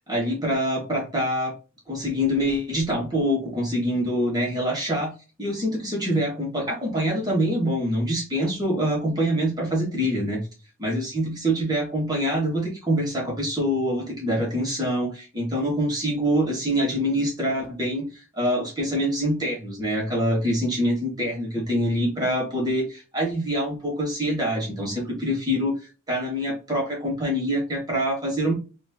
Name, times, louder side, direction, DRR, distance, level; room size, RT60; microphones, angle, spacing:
voice 1, 0.1-1.5 1.9-5.1 5.4-10.4 10.8-25.7 26.1-28.5, equal, 20° right, -2 dB, 2.0 m, -25 dB
4.6 x 3.1 x 2.8 m, 0.31 s
head